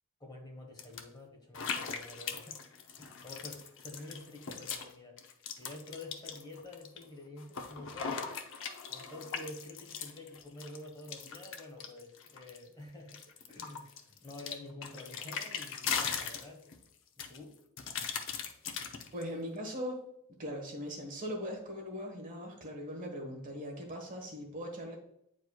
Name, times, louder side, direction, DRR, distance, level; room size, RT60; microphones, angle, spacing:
voice 1, 0.2-2.7 3.0-5.2 5.6-8.3 8.9-13.2 13.5-16.7 17.2-17.6, left 2 dB, 20° left, 0 dB, 1.4 m, -48 dB
sound 1, 0.8-1.0 1.5-4.9 5.2-7.0 7.4-12.7 13.1-16.8 17.2-19.2, left 6 dB, 60° left, 0.8 m, -39 dB
voice 2, 19.1-20.0 20.4-24.9, equal, 35° right, 1 dB, 1.4 m, -40 dB
9.1 x 4.7 x 2.3 m, 0.76 s
head